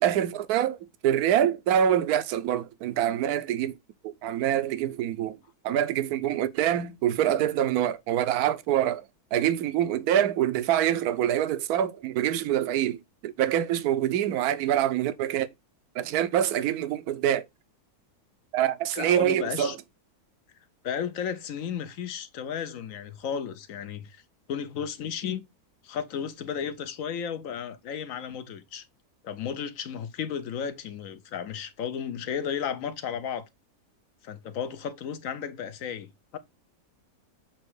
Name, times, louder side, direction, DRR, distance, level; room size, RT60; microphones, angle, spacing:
voice 1, 0.0-0.8 1.0-3.8 4.2-5.4 5.6-15.5 15.9-17.5 18.5-19.8, right 11 dB, 75° right, 1.2 m, -25 dB
voice 2, 18.9-19.8 20.8-24.2 24.5-25.4 25.8-28.9 29.2-33.4 34.2-36.4, left 7 dB, 65° left, 1.0 m, -34 dB
7.5 x 2.9 x 4.6 m
omnidirectional pair, 1.6 m